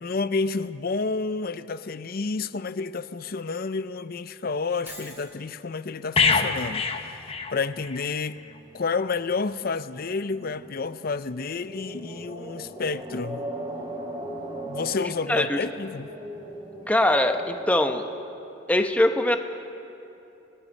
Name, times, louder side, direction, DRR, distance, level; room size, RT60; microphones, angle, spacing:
voice 1, 0.0-6.8 7.5-8.4 8.7-13.5 14.7-16.1, left 4 dB, 50° left, 0.6 m, -30 dB
Shatter, 4.9-5.4, equal, 10° right, 3.3 m, -43 dB
sound 1, 6.2-8.1 8.4-8.6, left 5 dB, 30° left, 1.0 m, -25 dB
sound 2, 8.3-17.6, right 1 dB, 25° right, 2.6 m, -39 dB
voice 2, 16.9-18.0 18.7-19.4, left 1 dB, 5° left, 0.9 m, -22 dB
24.5 x 20.5 x 5.4 m
head